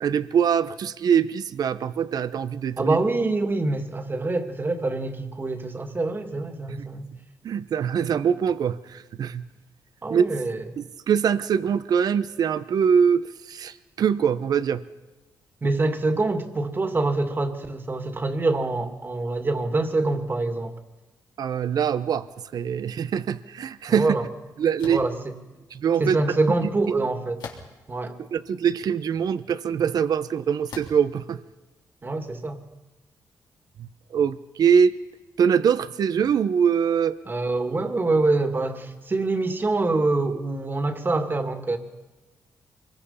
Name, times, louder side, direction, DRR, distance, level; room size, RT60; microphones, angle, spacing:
voice 1, 0.0-3.0 6.8-6.9 7.4-9.4 10.1-10.2 10.8-14.8 21.4-22.3 22.5-24.1 24.6-25.0 25.7-26.2 28.3-31.4 34.1-34.9 35.4-37.2, right 7 dB, 65° right, 13 dB, 0.9 m, -23 dB
voice 2, 2.8-7.1 10.0-10.7 15.6-20.8 23.9-24.3 24.8-25.4 26.0-27.4 27.9-28.2 32.0-32.6 37.3-41.8, right 2 dB, 30° right, 6 dB, 2.4 m, -25 dB
sound 1, 24.8-25.1 27.4-27.9 28.6-28.7 30.7-31.1, left 5 dB, 80° left, 3.5 m, -40 dB
24.5 x 22.0 x 5.7 m, 1.1 s
cardioid pair, 90°, 7 cm